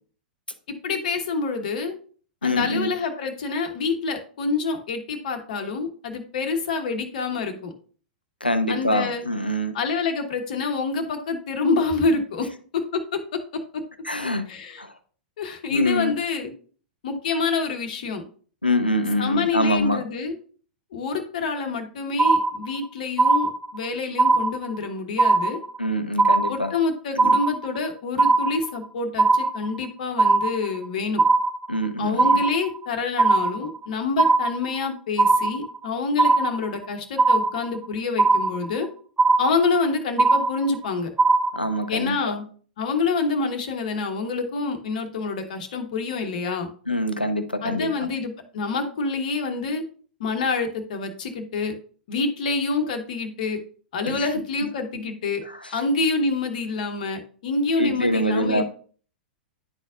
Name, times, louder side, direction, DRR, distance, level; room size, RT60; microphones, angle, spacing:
voice 1, 0.8-2.0 2.4-7.7 8.7-9.3 9.7-12.5 12.7-13.4 14.5-14.8 15.4-16.5 17.0-18.2 19.2-20.4 20.9-25.6 26.5-31.2 32.0-38.9 39.4-41.1 41.9-42.4 42.8-46.7 47.6-49.8 50.2-51.7 52.1-53.6 53.9-55.4 55.7-58.6, left 4 dB, 55° left, 6 dB, 1.1 m, -27 dB
voice 2, 2.4-2.9 8.4-9.8 14.0-14.5 14.8-14.9 15.7-16.1 18.6-20.0 25.8-26.7 27.2-27.4 31.7-32.4 41.5-42.4 46.9-48.1 54.1-54.3 55.4-55.8 57.8-58.6, left 1 dB, 90° left, 9 dB, 0.7 m, -25 dB
sound 1, 22.2-22.9 23.2-23.9 24.2-24.9 25.2-25.9 26.2-26.9 27.2-27.9 28.2-28.9 29.2-29.9 30.2-30.9 31.2-31.9 32.2-32.9 33.2-33.9 34.2-34.9 35.2-35.9 36.2-36.9 37.2-37.9 38.2-38.9 39.2-39.9 40.2-40.9 41.2-41.9, right 3 dB, 10° right, 0.3 m, -20 dB
10.5 x 4.2 x 2.5 m, 0.43 s
figure-of-eight pair, 100°, 5 cm